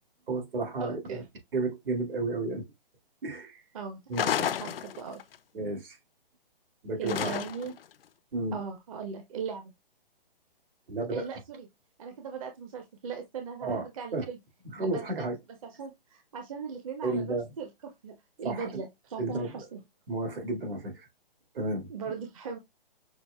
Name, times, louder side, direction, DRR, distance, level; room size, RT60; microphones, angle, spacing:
voice 1, 0.3-1.2 1.5-2.6 3.2-3.6 4.1-4.3 5.5-6.0 6.8-7.4 8.3-8.6 10.9-11.3 13.6-13.9 14.1-14.3 14.6-15.4 17.0-17.5 18.4-18.8 19.2-19.7 20.1-21.1 21.5-21.9, right 2 dB, 70° right, 2.0 m, -32 dB
voice 2, 0.8-1.2 3.7-5.2 7.0-7.7 8.5-9.7 11.1-11.7 12.0-14.4 14.8-15.0 15.6-19.8 21.9-22.6, right 5 dB, 35° right, 0.7 m, -39 dB
sound 1, 4.1-5.4 7.1-7.8, left 9 dB, 75° left, 0.5 m, -31 dB
5.9 x 2.5 x 2.2 m
hypercardioid pair, 150°, 29 cm